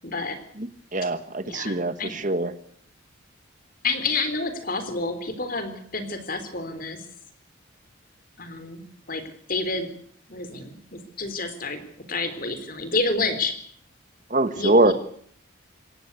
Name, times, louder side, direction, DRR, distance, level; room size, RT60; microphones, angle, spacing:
voice 1, 0.0-0.4 1.4-2.2 3.8-7.0 8.4-8.8 9.1-9.2 9.5-9.9 10.3-11.8 12.1-13.5 14.5-14.9, left 3 dB, 45° left, 10 dB, 3.6 m, -29 dB
voice 2, 0.6-2.5 14.3-14.9, right 2 dB, 40° right, 12 dB, 1.3 m, -23 dB
27.5 x 15.5 x 8.3 m, 0.62 s
head